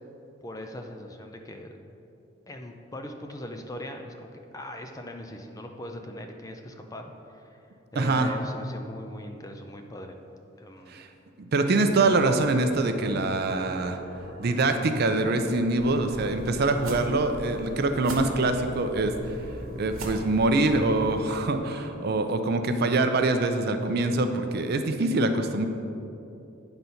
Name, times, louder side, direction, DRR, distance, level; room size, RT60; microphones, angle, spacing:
voice 1, 0.4-1.7 2.5-7.0 7.3-7.6 7.9-10.2 10.6-10.9, left 1 dB, 15° left, 4 dB, 0.5 m, -40 dB
voice 2, 8.0-8.3 10.9-11.1 11.4-14.0 14.4-19.1 19.8-25.7, right 2 dB, 50° right, 7 dB, 0.5 m, -24 dB
sound 1, 11.8-22.0, equal, 40° left, 1.1 m, -44 dB
sound 2, 15.8-21.2, right 1 dB, 85° right, 1.1 m, -40 dB
9.3 x 4.0 x 5.7 m, 2.8 s
head